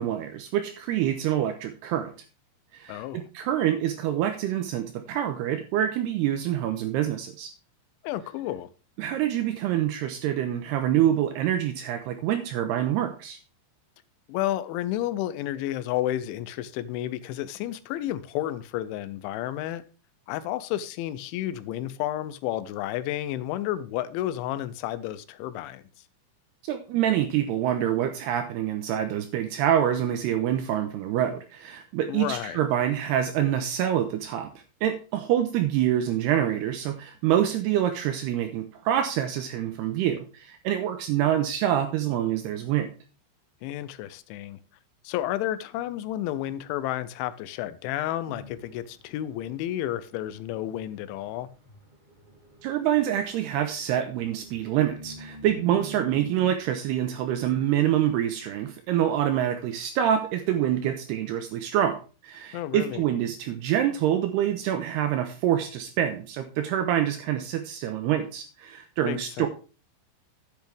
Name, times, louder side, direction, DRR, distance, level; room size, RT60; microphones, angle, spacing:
voice 1, 0.0-2.1 2.7-7.5 9.0-13.4 26.7-34.5 34.8-42.9 52.6-69.5, right 11 dB, 85° right, 2.4 m, -26 dB
voice 2, 2.9-3.2 8.0-8.7 14.3-19.8 20.3-25.8 32.1-32.6 43.6-44.6 45.0-51.5 62.5-63.0 69.0-69.5, left 13 dB, 85° left, 3.0 m, -31 dB
sound 1, 48.3-56.6, right 1 dB, 35° right, 0.7 m, -47 dB
10.5 x 8.1 x 3.4 m
omnidirectional pair, 5.4 m